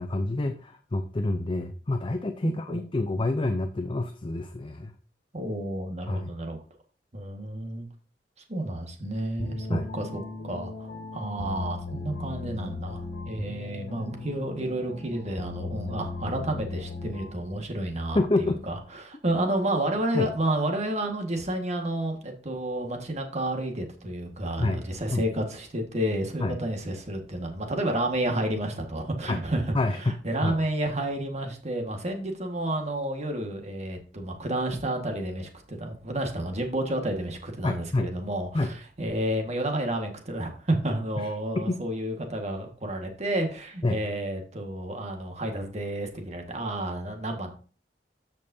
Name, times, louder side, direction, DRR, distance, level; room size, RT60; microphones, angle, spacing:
voice 1, 0.0-4.9 6.1-6.4 9.7-9.9 18.1-18.6 20.1-20.3 24.6-24.8 25.1-25.2 26.4-26.6 29.3-29.4 29.7-30.1 30.4-30.6 37.6-38.1 38.5-38.7 41.2-41.3 41.6-41.8 43.8-44.0, left 2 dB, 30° left, 7 dB, 0.5 m, -27 dB
voice 2, 2.4-2.8 5.3-6.6 7.1-7.9 8.5-47.5, right 1 dB, 40° right, 3 dB, 1.6 m, -31 dB
sound 1, 9.4-17.5, left 3 dB, 75° left, 1.9 m, -37 dB
13.5 x 5.3 x 2.7 m, 0.38 s
head